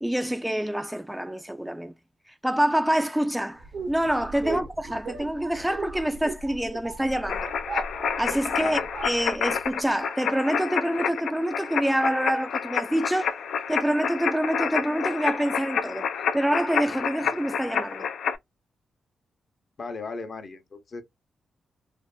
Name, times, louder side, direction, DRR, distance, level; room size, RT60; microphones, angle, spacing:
voice 1, 0.0-1.9 2.3-7.5 8.2-13.4 13.7-16.1 16.3-18.1, right 1 dB, 5° right, 0.3 m, -26 dB
sound 1, 3.6-9.8, right 4 dB, 65° right, 0.6 m, -38 dB
sound 2, 7.3-18.4, left 7 dB, 80° left, 0.4 m, -29 dB
voice 2, 8.5-8.9 19.8-21.0, left 4 dB, 50° left, 0.7 m, -36 dB
2.6 x 2.4 x 2.2 m
cardioid pair, 85°, 0 cm